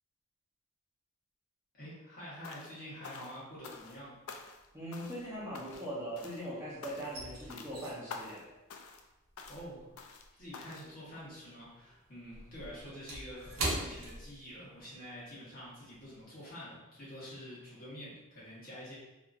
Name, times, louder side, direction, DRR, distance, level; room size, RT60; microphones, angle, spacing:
voice 1, 1.7-4.1 9.5-9.9 10.4-19.0, equal, 45° left, -9 dB, 1.2 m, -47 dB
sound 1, 2.4-2.8 3.0-4.0 4.3-4.7 4.9-5.3 5.5-5.9 6.2-6.5 6.8-7.2 7.5-7.7 8.1-8.4 8.7-9.1 9.4-9.6 10.0-10.3 10.5-10.9, left 5 dB, 85° left, 0.3 m, -48 dB
sound 2, 3.6-4.1 4.4-6.4 6.7-11.3 11.6-14.9 15.2-15.4 15.9-16.2, right 1 dB, 85° right, 0.7 m, -42 dB
voice 2, 4.7-8.5, equal, 15° right, -9 dB, 0.7 m, -41 dB
2.8 x 2.5 x 2.4 m, 1.0 s
head